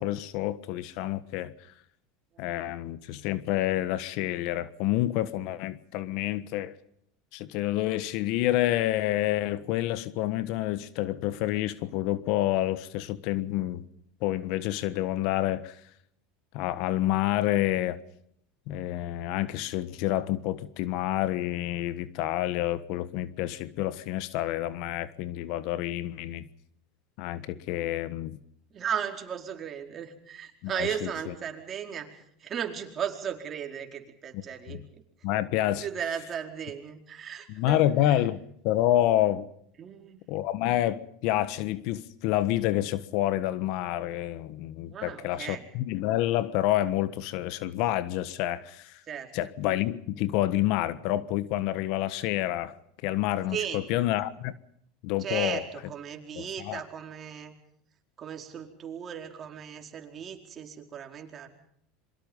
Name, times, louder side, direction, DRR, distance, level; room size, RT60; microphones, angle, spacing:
voice 1, 0.0-1.5 2.4-6.7 7.3-13.8 14.2-15.8 16.5-18.0 18.7-26.5 27.2-28.4 30.8-30.9 34.3-34.4 34.7-34.8 35.2-35.8 37.6-39.5 40.3-49.0 49.3-52.7 53.0-54.5 55.0-55.6 56.4-56.8, left 14 dB, 65° left, 1.4 m, -28 dB
voice 2, 28.7-35.0 35.8-38.2 39.8-40.2 44.9-45.7 49.0-49.3 53.5-53.8 55.2-57.6 58.2-61.5, right 8 dB, 35° right, 4.6 m, -36 dB
27.0 x 23.5 x 5.5 m
supercardioid pair, 105°, 0 cm